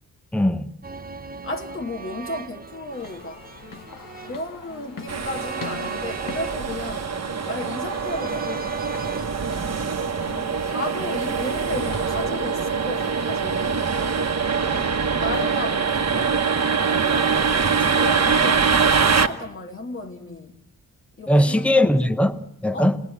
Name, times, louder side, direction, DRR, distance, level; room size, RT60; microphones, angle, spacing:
voice 1, 0.3-0.7 21.3-23.0, left 1 dB, 5° left, 1.0 m, -20 dB
sound 1, 0.8-11.0 11.3-11.4, right 4 dB, 25° right, 0.9 m, -38 dB
voice 2, 1.4-3.4 4.2-7.1 7.5-8.7 10.6-13.9 15.2-16.3 16.8-17.4 17.9-20.6 21.2-22.0 22.7-22.9, left 1 dB, 35° left, 1.8 m, -33 dB
sound 2, 2.9-15.7, left 4 dB, 60° left, 1.7 m, -43 dB
sound 3, 5.1-19.3, right 5 dB, 45° right, 1.3 m, -23 dB
28.0 x 20.0 x 8.3 m
wide cardioid pair, 120°, 37 cm